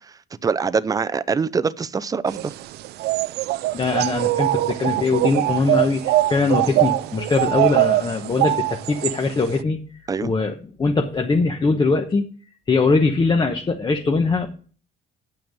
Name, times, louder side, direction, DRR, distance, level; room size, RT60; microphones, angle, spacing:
voice 1, 0.4-2.5 10.1-10.3, right 5 dB, 20° right, 0.5 m, -23 dB
sound 1, 2.3-9.6, right 17 dB, 75° right, 0.5 m, -22 dB
voice 2, 3.7-9.8 10.2-12.2 12.7-14.5, left 4 dB, 25° left, 1.1 m, -21 dB
8.9 x 6.0 x 6.4 m
cardioid pair, 110°, 17 cm